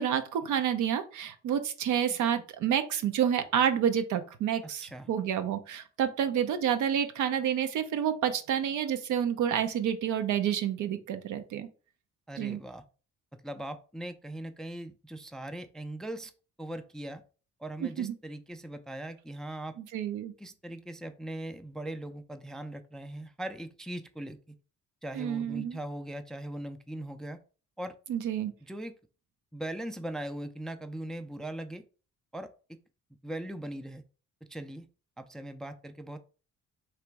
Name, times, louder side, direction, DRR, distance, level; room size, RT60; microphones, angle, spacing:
voice 1, 0.0-11.7 12.4-12.6 17.8-18.1 19.9-20.3 25.2-25.8 28.1-28.5, right 9 dB, 75° right, 9 dB, 0.7 m, -29 dB
voice 2, 12.3-12.8 13.4-16.3 16.6-17.2 17.6-19.8 20.4-24.4 25.0-27.4 27.8-27.9 28.6-28.9 29.5-31.8 32.3-32.5 33.2-34.0 34.5-34.9 35.2-36.2, right 1 dB, ahead, 9 dB, 0.3 m, -40 dB
3.3 x 2.9 x 4.6 m, 0.37 s
cardioid pair, 90°, 30 cm